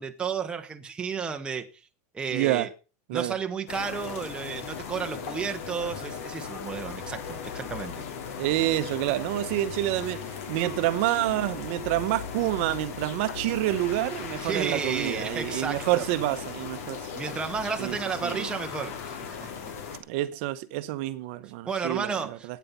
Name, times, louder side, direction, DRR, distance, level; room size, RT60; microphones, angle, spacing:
voice 1, 0.0-1.7 2.1-2.7 3.1-8.0 14.4-16.1 17.1-19.7 21.7-22.6, right 6 dB, 10° right, 1.0 m, -32 dB
voice 2, 2.3-2.7 3.1-3.4 8.4-10.2 10.5-17.1 17.8-18.0 18.2-18.5 20.1-22.6, right 15 dB, 50° right, 0.9 m, -28 dB
sound 1, 3.7-20.0, left 6 dB, 65° left, 2.6 m, -37 dB
12.0 x 9.3 x 5.6 m
supercardioid pair, 165°, 8 cm